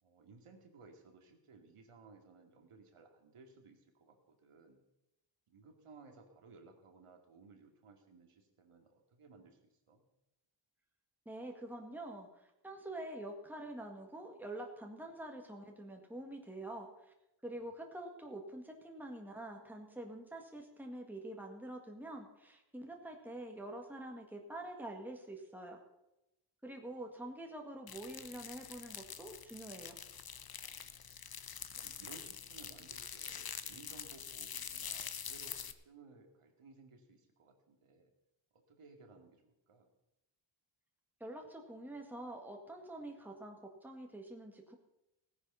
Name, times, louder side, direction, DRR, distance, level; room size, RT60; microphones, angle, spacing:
voice 1, 0.0-4.8 5.5-10.0 17.5-17.7 30.6-31.1 31.8-38.1 38.5-39.9, right 4 dB, 90° right, 4 dB, 2.4 m, -59 dB
voice 2, 11.3-17.1 17.4-25.8 26.6-30.0 41.2-44.8, right 1 dB, 5° right, 2 dB, 1.8 m, -46 dB
sound 1, 27.9-35.7, left 7 dB, 45° left, 0.9 m, -46 dB
17.0 x 10.0 x 5.6 m, 0.91 s
wide cardioid pair, 125°, 49 cm